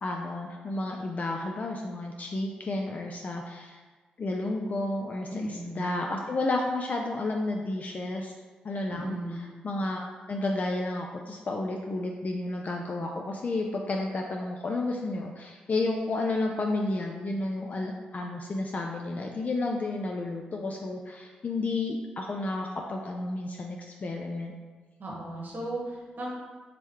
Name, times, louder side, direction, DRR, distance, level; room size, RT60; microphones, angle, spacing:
voice 1, 0.0-3.8 4.2-8.3 8.6-24.5, left 2 dB, 45° left, 1 dB, 0.4 m, -31 dB
voice 2, 5.3-5.9 8.9-9.4 25.0-26.3, right 1 dB, 55° right, -3 dB, 1.1 m, -36 dB
3.7 x 3.0 x 3.2 m, 1.4 s
supercardioid pair, 45°, 4 cm